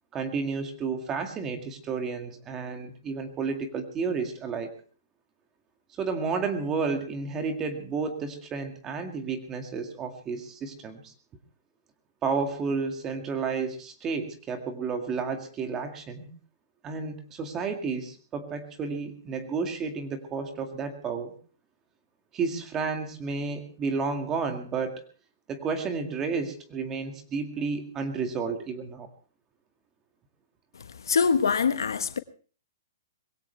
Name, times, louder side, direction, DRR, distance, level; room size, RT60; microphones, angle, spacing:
voice 1, 0.1-4.7 6.0-11.1 12.2-16.3 16.8-21.3 22.3-25.0 25.5-29.1, right 5 dB, 20° right, 2.1 m, -31 dB
voice 2, 31.1-32.2, left 5 dB, 90° left, 1.3 m, -23 dB
21.5 x 17.0 x 3.4 m
hypercardioid pair, 155°, 2 cm